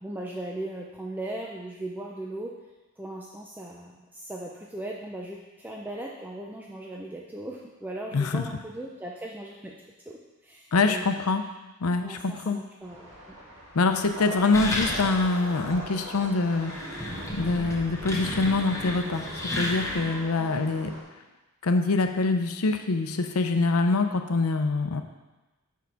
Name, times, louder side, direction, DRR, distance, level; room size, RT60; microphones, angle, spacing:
voice 1, 0.0-2.5 3.0-9.7 10.1-11.1 12.0-13.1 20.4-20.5, right 1 dB, 10° right, -2 dB, 0.5 m, -38 dB
voice 2, 8.1-8.5 10.7-11.4 11.8-12.6 13.7-16.7 17.3-19.3 19.5-20.9 21.6-25.0, left 3 dB, 80° left, 7 dB, 0.6 m, -25 dB
sound 1, 12.8-21.0, right 1 dB, 55° right, 2.3 m, -42 dB
sound 2, 14.5-15.4 15.7-15.8 16.4-20.2, left 1 dB, 15° left, 1.1 m, -33 dB
7.3 x 4.7 x 5.8 m, 1.1 s
head